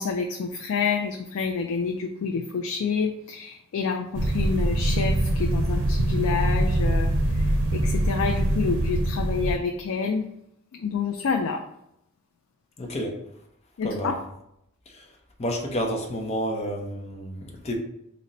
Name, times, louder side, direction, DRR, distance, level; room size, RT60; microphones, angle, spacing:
voice 1, 0.0-7.1 7.7-10.2 10.8-11.6 13.8-14.2, left 5 dB, 65° left, 3 dB, 0.3 m, -28 dB
sound 1, 4.1-9.6, right 1 dB, 90° right, 0.6 m, -23 dB
voice 2, 12.8-13.1 13.8-14.2 15.4-17.7, equal, 30° left, 1 dB, 0.6 m, -30 dB
3.8 x 2.1 x 4.1 m, 0.79 s
head